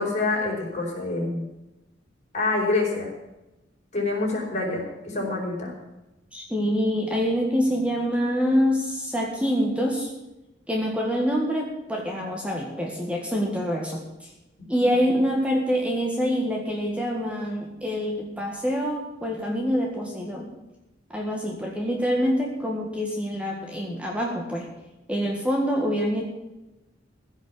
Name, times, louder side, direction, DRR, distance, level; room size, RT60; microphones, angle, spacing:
voice 1, 0.0-1.5 2.3-3.1 3.9-5.7 14.7-14.8, left 3 dB, 40° left, -2 dB, 5.1 m, -26 dB
voice 2, 6.3-10.1 10.7-14.3 14.7-20.5 21.1-24.7 25.1-26.2, equal, 5° right, 0 dB, 1.8 m, -26 dB
15.5 x 6.5 x 10.0 m, 0.98 s
head